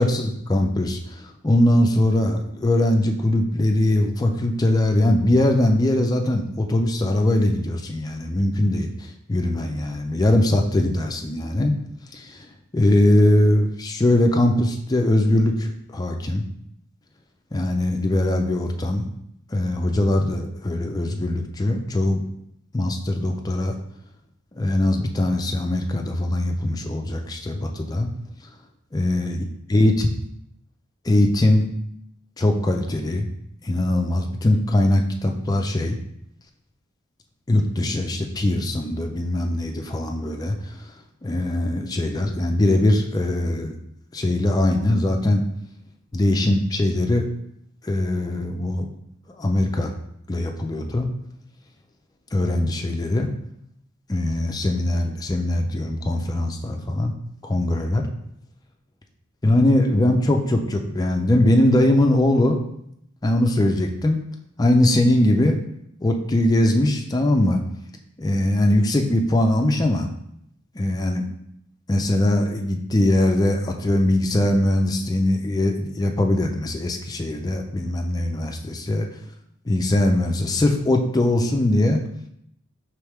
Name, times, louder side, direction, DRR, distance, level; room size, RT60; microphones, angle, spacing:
voice 1, 0.0-11.7 12.1-12.5 12.7-16.4 17.5-19.1 19.5-22.2 22.7-23.7 24.5-28.1 28.9-29.4 29.7-30.1 31.0-31.7 32.4-33.3 33.6-36.0 37.5-40.8 41.2-43.7 44.1-45.4 46.1-47.3 47.8-48.9 49.4-49.9 50.3-51.1 52.3-53.3 54.1-57.1 57.4-58.1 59.4-62.6 63.2-64.2 64.6-65.6 66.0-67.6 68.2-70.1 70.7-71.2 71.9-79.1 79.7-82.0, left 1 dB, 20° left, 3 dB, 0.4 m, -21 dB
4.6 x 3.1 x 3.4 m, 0.74 s
head